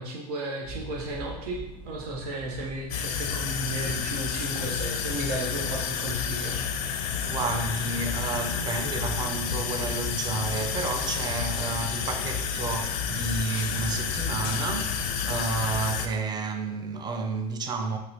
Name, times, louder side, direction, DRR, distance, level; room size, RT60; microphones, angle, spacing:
voice 1, 0.0-1.6 1.9-7.0, right 1 dB, 65° right, 0.6 m, -34 dB
sound 1, 0.6-15.2, right 1 dB, 45° right, 0.9 m, -47 dB
sound 2, 2.9-16.1, left 7 dB, 55° left, 0.4 m, -30 dB
sound 3, 5.9-16.0, equal, 90° right, 0.9 m, -45 dB
voice 2, 6.9-18.0, right 4 dB, 20° right, 0.4 m, -31 dB
2.9 x 2.8 x 2.7 m
hypercardioid pair, 90°, 21 cm